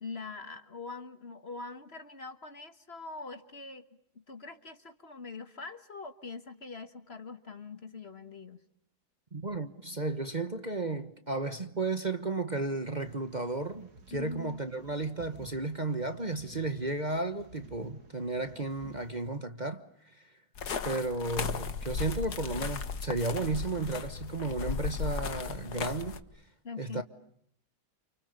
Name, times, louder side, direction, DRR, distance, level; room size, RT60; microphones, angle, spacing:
voice 1, 0.0-3.9 4.1-8.6 14.1-14.6 26.6-27.0, left 4 dB, 40° left, 1.6 m, -43 dB
voice 2, 9.3-19.8 20.1-20.2 20.8-26.2 26.8-27.0, right 2 dB, 30° right, 1.3 m, -33 dB
sound 1, 13.0-19.1, right 4 dB, 70° right, 2.9 m, -54 dB
sound 2, 20.6-26.2, left 6 dB, 70° left, 2.0 m, -36 dB
29.5 x 29.0 x 6.9 m
omnidirectional pair, 1.8 m